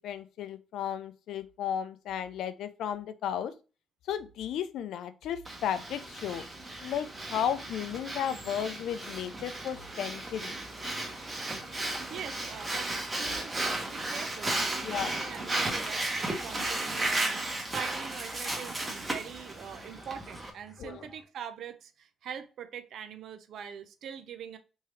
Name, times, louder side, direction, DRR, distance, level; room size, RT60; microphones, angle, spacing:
voice 1, 0.0-3.5 4.0-6.4 6.8-10.6 14.8-15.2 20.8-21.1, left 9 dB, 80° left, 0.4 m, -34 dB
Breathing, 5.4-20.5, right 2 dB, 25° right, 1.1 m, -34 dB
sound 1, 11.2-21.2, left 1 dB, 10° left, 1.3 m, -54 dB
voice 2, 11.8-24.6, right 8 dB, 70° right, 0.5 m, -43 dB
3.6 x 2.8 x 3.1 m
cardioid pair, 85°, 0 cm